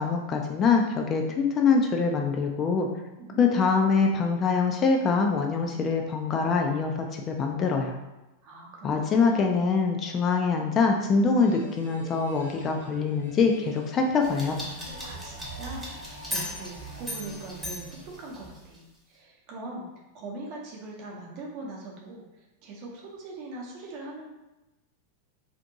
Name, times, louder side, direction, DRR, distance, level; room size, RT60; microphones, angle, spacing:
voice 1, 0.0-2.9 3.4-8.0 8.8-14.6, left 4 dB, 30° left, 3 dB, 0.3 m, -24 dB
voice 2, 8.4-9.5 15.0-19.8 20.1-22.2 22.6-24.3, right 2 dB, 40° right, -2 dB, 0.7 m, -41 dB
sound 1, 11.4-18.4, right 1 dB, 80° right, 0.6 m, -46 dB
sound 2, 14.2-18.8, equal, ahead, 0.8 m, -37 dB
2.6 x 2.5 x 2.6 m, 1.0 s
figure-of-eight pair, 90°, 0 cm